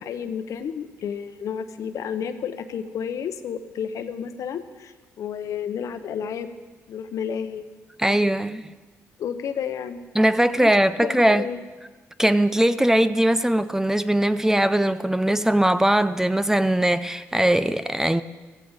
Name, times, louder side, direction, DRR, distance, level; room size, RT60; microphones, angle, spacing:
voice 1, 0.0-6.5 6.9-7.6 9.2-10.0 10.6-10.7 11.0-11.6, left 7 dB, 75° left, 1.0 m, -31 dB
voice 2, 8.0-8.7 10.1-11.5 12.2-18.2, right 1 dB, 10° right, 0.5 m, -20 dB
15.5 x 15.0 x 4.9 m
cardioid pair, 95°, 6 cm